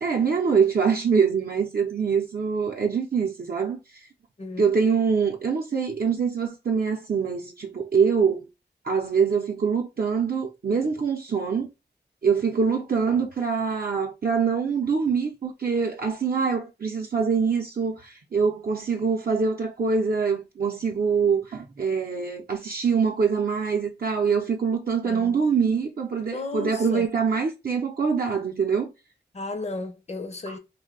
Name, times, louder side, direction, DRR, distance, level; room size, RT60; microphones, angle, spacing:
voice 1, 0.0-3.8 4.6-8.5 8.8-11.7 12.2-28.9, right 5 dB, 55° right, 0.6 m, -24 dB
voice 2, 4.4-4.7 25.0-25.4 26.3-27.1 29.3-30.6, left 3 dB, 35° left, 0.6 m, -34 dB
2.5 x 2.2 x 3.8 m
cardioid pair, 55°, 18 cm